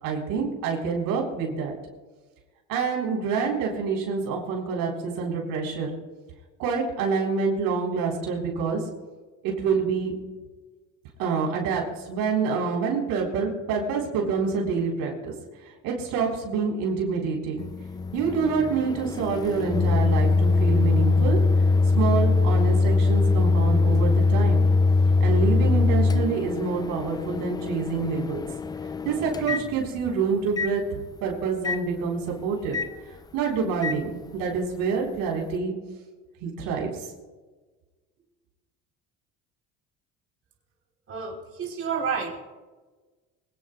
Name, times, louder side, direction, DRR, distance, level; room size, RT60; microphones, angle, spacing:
voice 1, 0.0-1.7 2.7-5.9 6.6-8.8 9.4-10.2 11.2-15.3 15.8-17.6 18.1-21.4 21.9-24.7 25.2-28.4 29.0-32.8 33.3-35.7 36.4-37.1, right 5 dB, 80° right, -1 dB, 4.0 m, -27 dB
Microwave oven, 17.6-30.1 30.6-30.7 31.6-31.8 32.7-32.9 33.8-34.0, left 3 dB, 10° left, 0.3 m, -22 dB
voice 2, 41.1-42.4, right 6 dB, 40° right, -1 dB, 3.6 m, -30 dB
24.5 x 17.5 x 2.3 m, 1.3 s
cardioid pair, 115°, 35 cm